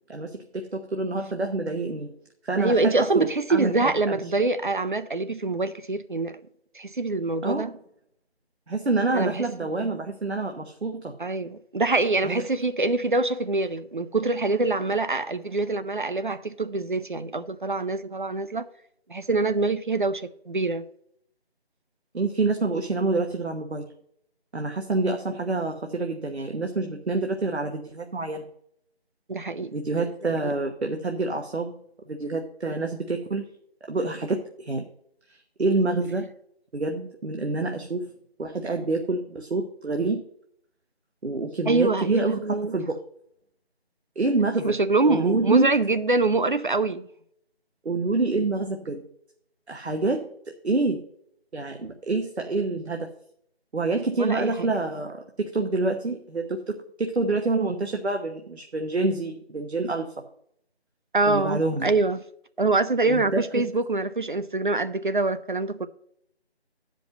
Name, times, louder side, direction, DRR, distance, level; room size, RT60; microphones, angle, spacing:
voice 1, 0.1-2.1 2.4-4.2 7.4-7.8 8.7-11.2 12.2-12.4 22.1-23.9 24.5-28.4 29.7-31.7 32.1-33.5 33.9-34.9 35.3-36.3 36.7-38.1 38.4-40.2 41.2-43.0 44.2-44.7 45.1-45.7 47.8-49.0 49.7-50.2 50.5-51.0 51.5-53.1 53.7-60.1 61.3-61.9 63.1-63.4, right 3 dB, 80° right, 1.1 m, -27 dB
voice 2, 2.6-6.4 6.7-7.7 9.1-9.4 11.2-18.7 19.1-20.8 29.3-29.7 30.4-30.5 41.7-42.8 44.6-47.1 54.2-54.7 61.1-62.2 62.6-65.9, right 3 dB, 50° right, 0.5 m, -25 dB
9.2 x 5.3 x 6.6 m
figure-of-eight pair, 165°, 32 cm